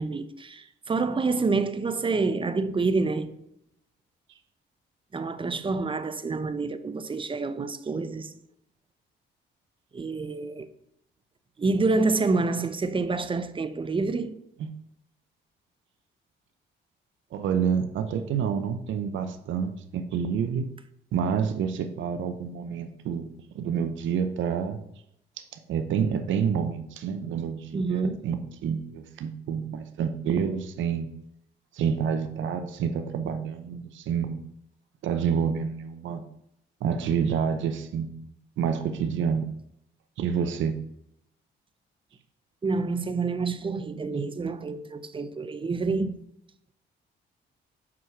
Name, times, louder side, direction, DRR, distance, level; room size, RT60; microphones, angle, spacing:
voice 1, 0.0-3.3 5.1-8.3 9.9-10.7 11.6-14.4 27.7-28.2 42.6-46.2, right 3 dB, 25° right, 0.6 m, -27 dB
voice 2, 17.3-20.6 21.1-24.8 25.4-31.1 31.7-34.4 35.0-36.2 36.8-39.5 40.2-40.8, right 7 dB, 75° right, 0.7 m, -28 dB
6.0 x 4.7 x 6.0 m
cardioid pair, 90°, 20 cm